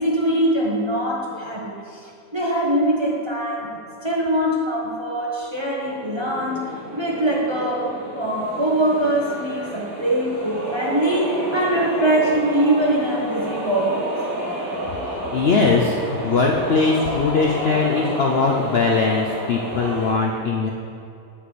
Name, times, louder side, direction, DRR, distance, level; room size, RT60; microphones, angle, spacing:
voice 1, 0.0-14.2, right 1 dB, 20° right, -4 dB, 0.7 m, -23 dB
sound 1, 5.9-20.1, right 1 dB, 50° right, 2.3 m, -30 dB
voice 2, 15.3-20.7, left 4 dB, 85° left, 0 dB, 0.5 m, -20 dB
8.4 x 8.2 x 3.2 m, 2.5 s
omnidirectional pair, 1.8 m